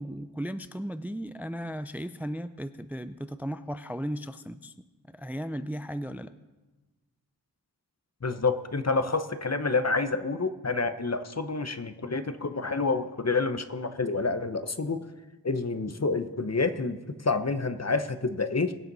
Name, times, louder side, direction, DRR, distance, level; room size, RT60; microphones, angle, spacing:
voice 1, 0.0-4.7 5.1-6.3, equal, 5° right, 11 dB, 0.4 m, -35 dB
voice 2, 8.2-15.0 15.4-18.7, left 3 dB, 40° left, 10 dB, 0.8 m, -28 dB
22.5 x 7.5 x 4.0 m, 1.2 s
wide cardioid pair, 50°, 39 cm